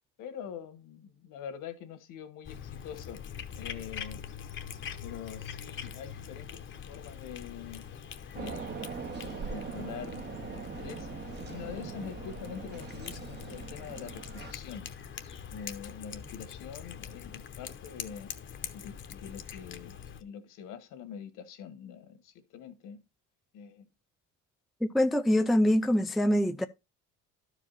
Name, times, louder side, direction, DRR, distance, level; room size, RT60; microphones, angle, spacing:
voice 1, 0.2-3.2 3.6-4.2 5.0-7.8 8.3-11.1 11.4-14.9 15.5-18.3 18.7-23.0 23.5-23.9, left 8 dB, 70° left, 1.6 m, -44 dB
Cat, 2.4-20.2, left 8 dB, 35° left, 0.9 m, -43 dB
sound 1, 8.4-14.5, right 6 dB, 30° right, 0.8 m, -41 dB
voice 2, 24.8-26.7, left 1 dB, ahead, 0.4 m, -24 dB
12.0 x 4.9 x 4.0 m
cardioid pair, 125°, 32 cm